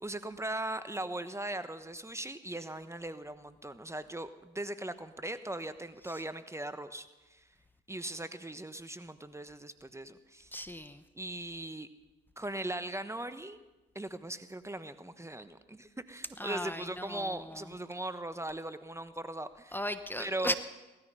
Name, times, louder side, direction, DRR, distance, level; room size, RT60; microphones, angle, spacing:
voice 1, 0.0-7.5 7.9-10.5 11.1-11.9 12.4-13.6 13.9-19.8 20.2-20.6, right 1 dB, 15° right, 11 dB, 1.1 m, -39 dB
voice 2, 10.5-11.0 16.4-17.7 19.7-20.6, left 1 dB, 10° left, 10 dB, 1.0 m, -37 dB
18.5 x 13.5 x 5.6 m, 1.1 s
hypercardioid pair, 55°, 21 cm